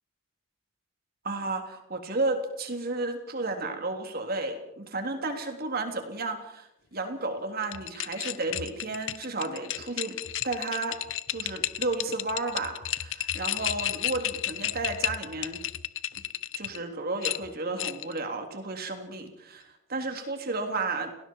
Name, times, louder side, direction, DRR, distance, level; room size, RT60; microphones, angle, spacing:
voice 1, 1.2-10.2 10.4-11.0 11.3-15.6 16.5-21.1, right 2 dB, 50° right, 4 dB, 3.5 m, -32 dB
sound 1, 7.6-16.8 17.2-18.2, left 12 dB, 80° left, 0.8 m, -32 dB
30.0 x 19.0 x 4.7 m, 0.80 s
head